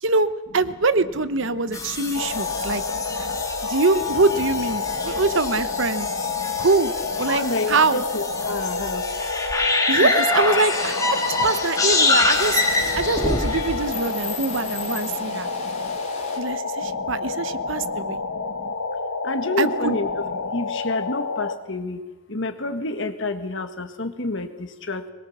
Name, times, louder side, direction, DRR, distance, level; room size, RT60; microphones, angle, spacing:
voice 1, 0.0-2.8 3.2-3.3 3.7-6.1 6.6-7.4 7.7-8.0 9.9-15.5 16.4-18.2 19.6-19.9, right 3 dB, 60° right, 13 dB, 0.9 m, -23 dB
voice 2, 1.4-3.4 4.2-4.3 4.8-5.3 5.7-6.6 7.2-9.2 10.0-10.1 11.1-13.2 13.6-16.0 16.8-18.7 19.2-22.0 22.3-25.1, left 2 dB, 60° left, 8 dB, 1.7 m, -32 dB
sound 1, 1.7-15.1, left 3 dB, 15° left, 2.1 m, -26 dB
sound 2, 2.1-21.5, left 4 dB, 90° left, 1.4 m, -29 dB
sound 3, 10.1-16.4, left 3 dB, 30° left, 4.4 m, -39 dB
22.0 x 21.5 x 7.3 m, 1.2 s
head